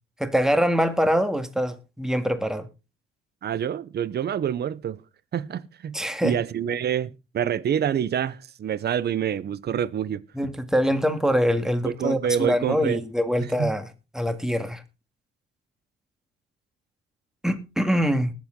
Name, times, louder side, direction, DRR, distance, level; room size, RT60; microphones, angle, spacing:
voice 1, 0.2-2.7 5.9-6.4 10.4-13.9 14.1-14.8 17.4-18.3, equal, 5° right, 2.0 m, -24 dB
voice 2, 3.4-5.0 5.3-10.2 11.8-13.0 13.4-13.8, right 9 dB, 55° right, 0.9 m, -27 dB
20.0 x 7.4 x 3.8 m
cardioid pair, 90°, 20 cm